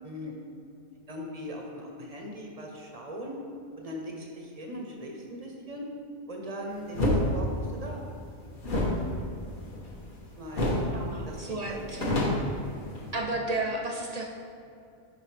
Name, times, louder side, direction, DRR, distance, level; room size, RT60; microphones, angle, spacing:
voice 1, 0.0-0.3 1.1-3.4 3.8-5.9 6.3-8.0 10.4-10.7 11.3-12.1 13.5-13.7, equal, 35° right, 0 dB, 0.8 m, -40 dB
sound 1, 6.9-7.2 8.6-10.2 10.5-10.9 11.2-11.3 11.7-13.2, left 1 dB, 45° left, 1.2 m, -28 dB
voice 2, 10.9-12.3 13.1-14.2, right 2 dB, 65° right, 0 dB, 0.4 m, -33 dB
10.5 x 4.0 x 3.2 m, 2.5 s
omnidirectional pair, 1.3 m